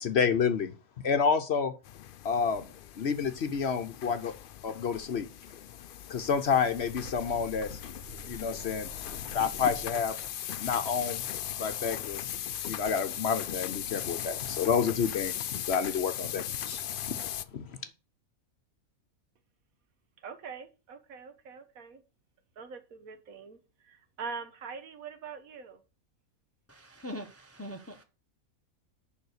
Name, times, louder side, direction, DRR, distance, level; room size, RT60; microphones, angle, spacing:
voice 1, 0.0-0.7 1.0-1.7 2.2-2.7 3.0-4.3 4.6-5.3 6.1-7.8 8.3-8.9 9.2-10.2 10.6-11.2 11.5-12.3 12.7-15.4 15.7-16.8 17.1-17.2 17.5-17.8, left 6 dB, 55° left, 0.9 m, -29 dB
sound 1, 1.8-17.5, left 10 dB, 75° left, 0.5 m, -38 dB
sound 2, 4.9-5.0 5.4-6.0 6.3-10.2, equal, 50° right, 1.7 m, -48 dB
voice 2, 20.2-22.0 22.6-25.8, right 5 dB, 80° right, 1.6 m, -43 dB
voice 3, 26.7-28.0, equal, 15° left, 0.6 m, -42 dB
6.9 x 5.5 x 6.5 m
omnidirectional pair, 1.5 m